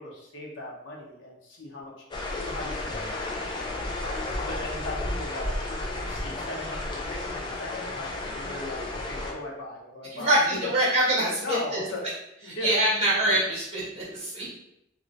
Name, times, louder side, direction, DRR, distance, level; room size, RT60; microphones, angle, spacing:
voice 1, 0.0-1.9 2.4-3.6 4.0-10.7 11.4-12.0 12.4-13.0 14.3-14.5, left 1 dB, 85° left, -2 dB, 0.9 m, -38 dB
sound 1, 2.1-9.3, left 2 dB, 25° left, 0.5 m, -32 dB
voice 2, 10.1-11.8 12.5-14.5, right 1 dB, 35° right, -8 dB, 1.5 m, -25 dB
3.0 x 2.9 x 2.6 m, 0.83 s
head